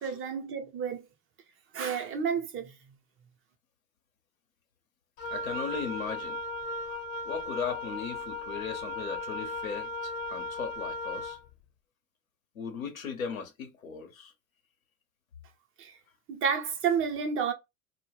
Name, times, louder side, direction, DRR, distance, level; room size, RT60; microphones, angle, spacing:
voice 1, 0.0-1.0 1.7-2.7 15.8-15.9 16.3-17.5, right 6 dB, 30° right, 0.7 m, -30 dB
Wind instrument woodwind instrument, 5.2-11.4, left 1 dB, 55° left, 0.9 m, -36 dB
voice 2, 5.3-6.4 7.3-11.4 12.6-14.3, left 6 dB, 85° left, 0.8 m, -37 dB
2.2 x 2.1 x 3.3 m
figure-of-eight pair, 75°, 40 cm